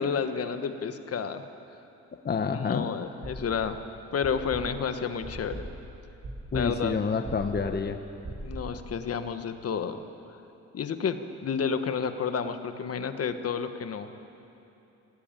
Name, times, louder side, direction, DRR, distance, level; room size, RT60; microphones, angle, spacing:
voice 1, 0.0-1.4 2.3-3.8 4.1-5.6 6.5-7.0 8.4-10.0 10.7-14.1, left 6 dB, 50° left, 9 dB, 1.3 m, -30 dB
voice 2, 2.2-2.8 6.5-8.0, left 5 dB, 35° left, 6 dB, 1.1 m, -28 dB
sound 1, 3.2-3.8 4.2-8.8, right 1 dB, 40° right, 7.5 m, -40 dB
19.5 x 18.0 x 9.1 m, 2.8 s
cardioid pair, 90°, 30 cm